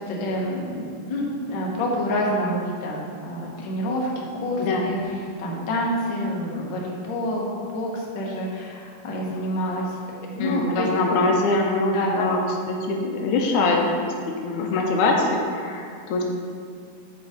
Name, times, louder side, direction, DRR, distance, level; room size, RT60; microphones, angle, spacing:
voice 1, 0.1-9.8 10.3-10.9 11.9-12.3 12.6-12.8 13.5-13.7 14.7-14.9, equal, 55° left, -3 dB, 1.3 m, -28 dB
voice 2, 4.6-4.9 10.4-12.4 12.7-14.1 14.4-16.2, left 2 dB, 80° left, 1 dB, 2.1 m, -23 dB
8.0 x 4.1 x 4.9 m, 2.2 s
omnidirectional pair, 3.5 m